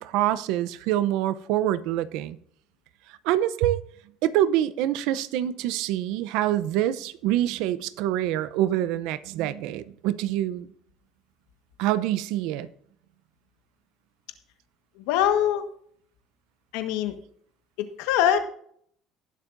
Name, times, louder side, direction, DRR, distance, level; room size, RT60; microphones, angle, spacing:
voice 1, 0.0-2.4 3.2-3.8 4.2-10.7 11.8-12.7, right 12 dB, 80° right, 0.7 m, -25 dB
voice 2, 15.0-15.6 16.7-17.2 17.8-18.4, left 10 dB, 90° left, 1.4 m, -23 dB
19.0 x 7.5 x 2.6 m
cardioid pair, 115°, 0 cm